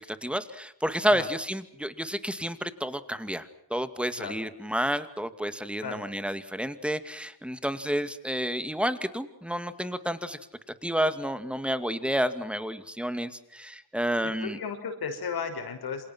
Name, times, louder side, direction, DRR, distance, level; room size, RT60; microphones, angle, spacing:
voice 1, 0.1-10.4 10.8-14.6, equal, 5° right, 11 dB, 2.3 m, -30 dB
voice 2, 14.2-16.1, left 6 dB, 70° left, 6 dB, 6.3 m, -35 dB
28.0 x 27.5 x 6.2 m, 0.75 s
cardioid pair, 100°, 38 cm